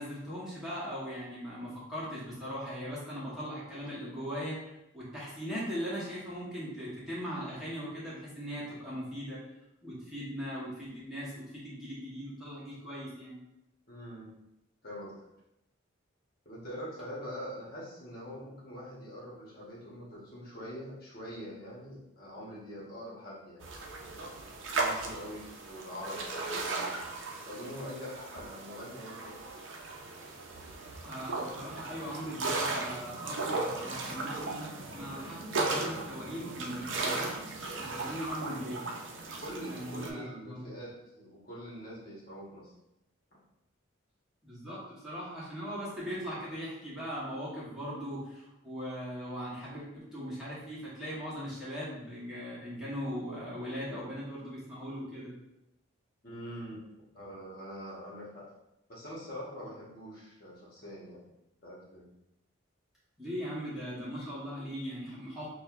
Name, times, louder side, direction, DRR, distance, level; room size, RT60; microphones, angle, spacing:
voice 1, 0.0-4.6 4.9-9.4 9.8-13.4 31.0-37.3 37.8-38.9 39.6-40.7 44.4-55.3 63.2-65.5, equal, ahead, -10 dB, 1.0 m, -39 dB
voice 2, 13.9-14.3 14.8-15.2 16.4-23.7 24.7-27.1 27.5-29.3 39.4-42.7 56.2-56.8 57.1-58.5 58.9-61.2 61.6-62.1, equal, 45° left, -6 dB, 1.1 m, -44 dB
sound 1, 23.6-40.1, right 3 dB, 65° right, 0.5 m, -36 dB
6.2 x 2.2 x 2.4 m, 0.89 s
head